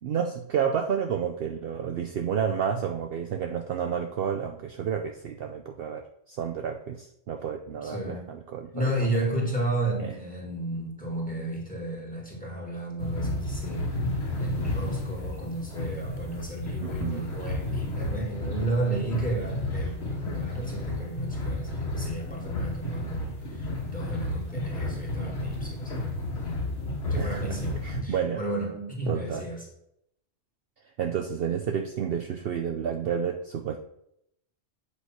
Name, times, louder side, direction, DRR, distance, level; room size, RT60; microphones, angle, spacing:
voice 1, 0.0-8.9 10.0-10.1 16.8-17.2 27.2-27.6 27.8-28.4 29.1-29.5 31.0-33.8, right 7 dB, 60° right, 5 dB, 0.7 m, -30 dB
voice 2, 7.8-8.3 8.7-13.9 14.4-26.1 27.1-29.7, right 2 dB, 5° left, -1 dB, 1.9 m, -33 dB
sound 1, 13.0-28.0, left 2 dB, 65° left, 1.9 m, -32 dB
8.2 x 3.2 x 5.8 m, 0.76 s
omnidirectional pair, 1.2 m